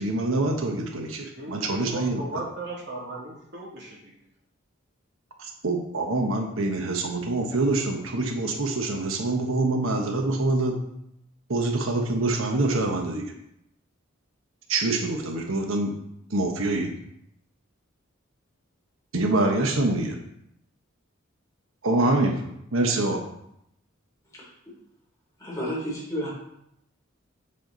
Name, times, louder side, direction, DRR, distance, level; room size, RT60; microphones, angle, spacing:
voice 1, 0.0-2.5 5.4-10.8 11.5-13.3 14.7-15.9 16.3-16.9 19.1-20.2 21.8-22.4 22.7-23.2, right 2 dB, 85° right, 3 dB, 1.1 m, -25 dB
voice 2, 1.4-4.0, right 2 dB, 60° right, -4 dB, 2.6 m, -37 dB
voice 3, 24.3-24.7 25.4-26.3, equal, 15° left, -5 dB, 3.3 m, -32 dB
7.7 x 7.2 x 4.0 m, 0.78 s
head